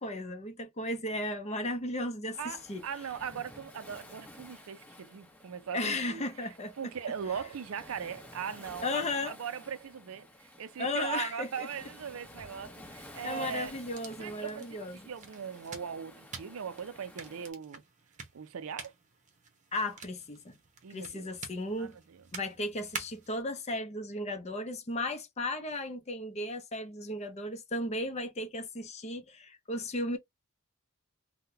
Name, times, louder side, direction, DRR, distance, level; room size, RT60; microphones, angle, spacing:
voice 1, 0.0-2.8 5.7-6.7 8.8-9.3 10.8-11.7 13.2-15.0 19.7-20.6 20.9-22.0 22.3-30.2, left 1 dB, 30° left, 0.6 m, -35 dB
Waves surf, 2.3-17.5, left 1 dB, 10° left, 1.0 m, -52 dB
voice 2, 2.4-13.7 14.2-17.8 18.3-18.9 20.8-21.3 21.8-22.2, right 7 dB, 65° right, 0.4 m, -40 dB
sound 1, 13.8-23.4, right 4 dB, 35° right, 0.9 m, -48 dB
3.7 x 2.2 x 2.7 m
head